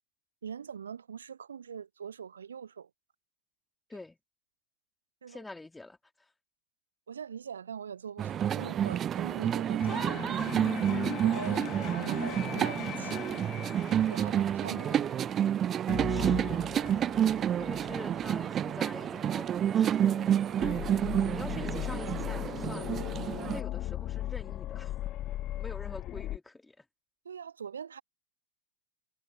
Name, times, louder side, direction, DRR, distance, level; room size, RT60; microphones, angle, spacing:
voice 1, 0.4-2.9 5.2-5.4 7.1-10.6 11.2-13.2 14.1-15.0 23.4-23.6 27.2-28.0, right 7 dB, 70° right, 1.0 m, -43 dB
voice 2, 5.3-6.3 14.7-15.4 16.1-16.7 17.6-20.2 21.3-23.0 23.5-24.9 25.6-26.8, left 2 dB, 5° left, 2.7 m, -46 dB
sound 1, 8.2-23.6, right 10 dB, 25° right, 0.4 m, -29 dB
sound 2, 9.8-15.5 15.9-26.4, left 14 dB, 35° left, 0.5 m, -39 dB
figure-of-eight pair, 90°, 0 cm